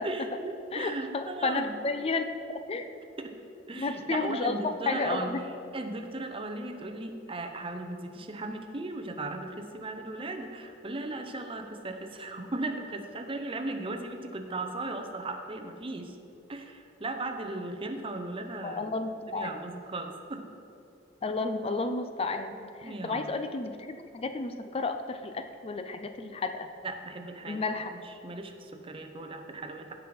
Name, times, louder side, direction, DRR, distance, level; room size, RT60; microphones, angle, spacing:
voice 1, 0.0-1.7 3.2-3.3 3.7-5.4 5.7-16.2 16.5-18.8 19.3-20.4 22.8-23.3 26.8-27.6 27.9-29.9, right 2 dB, 30° right, 6 dB, 0.7 m, -37 dB
voice 2, 0.7-2.3 2.7-2.9 3.8-5.4 18.6-19.5 21.2-26.7 27.5-27.9, left 3 dB, 30° left, 8 dB, 0.4 m, -32 dB
16.0 x 5.5 x 4.3 m, 2.7 s
head